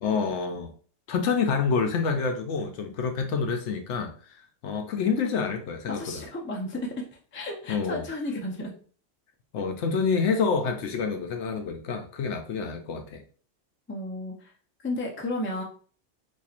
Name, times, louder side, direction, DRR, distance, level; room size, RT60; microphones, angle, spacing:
voice 1, 0.0-0.7 1.1-6.2 7.7-8.1 9.5-13.2, left 5 dB, 70° left, 0.9 m, -28 dB
voice 2, 5.9-7.1 7.3-8.7 13.9-14.3 14.8-15.6, left 1 dB, 20° left, 0.3 m, -33 dB
4.2 x 2.7 x 2.4 m
omnidirectional pair, 1.3 m